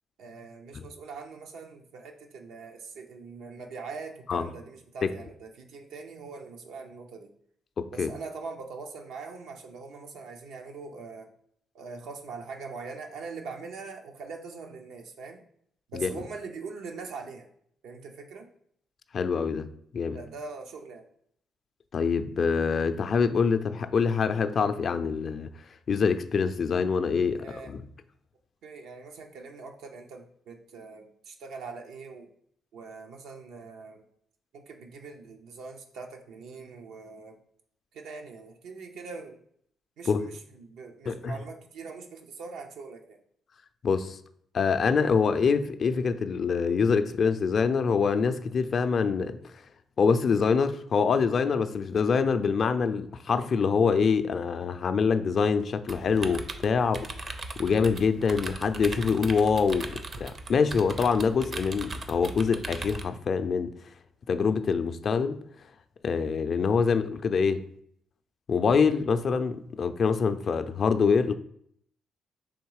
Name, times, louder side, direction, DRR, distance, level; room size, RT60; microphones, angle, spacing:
voice 1, 0.2-7.3 7.9-11.3 11.7-15.4 15.9-17.5 17.8-18.5 20.1-21.1 27.4-27.7 28.6-32.3 32.7-34.0 34.5-37.4 37.9-39.4 40.0-43.2, right 4 dB, 85° right, 0.6 m, -42 dB
voice 2, 7.8-8.1 15.9-16.2 19.1-19.7 19.9-20.2 21.9-25.5 25.9-27.8 40.1-40.3 41.1-41.4 43.8-44.2 44.5-49.4 50.0-63.8 64.3-65.4 66.0-67.6 68.5-71.3, left 5 dB, 50° left, 0.3 m, -25 dB
sound 1, 55.9-63.0, right 3 dB, 40° right, 0.5 m, -39 dB
3.6 x 3.0 x 4.7 m
cardioid pair, 90°, 0 cm